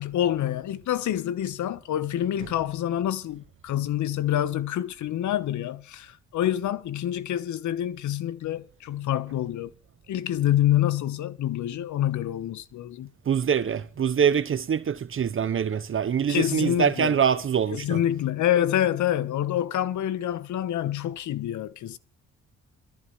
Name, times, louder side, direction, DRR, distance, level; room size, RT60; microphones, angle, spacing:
voice 1, 0.0-9.7 10.1-13.1 16.3-17.2 17.7-22.0, left 11 dB, 75° left, 1.1 m, -27 dB
voice 2, 13.3-18.0, right 7 dB, 45° right, 0.9 m, -24 dB
22.0 x 14.0 x 3.1 m
cardioid pair, 90°, 30 cm